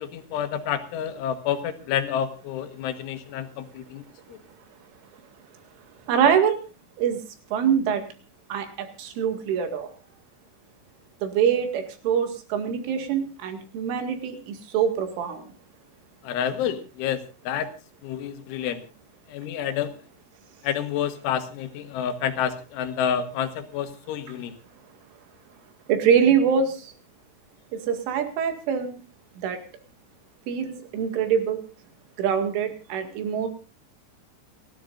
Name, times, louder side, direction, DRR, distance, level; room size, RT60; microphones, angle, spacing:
voice 1, 0.0-4.0 4.3-4.4 16.2-17.7 18.0-18.8 19.3-19.9 20.6-24.5, left 9 dB, 85° left, 8 dB, 3.8 m, -29 dB
voice 2, 6.1-6.6 7.0-7.2 7.5-8.0 8.5-9.9 11.2-15.4 25.9-26.9 27.9-29.0 29.4-29.6 30.5-31.6 32.2-33.5, right 7 dB, 90° right, 6 dB, 4.6 m, -24 dB
29.5 x 13.0 x 2.5 m, 0.32 s
omnidirectional pair, 5.4 m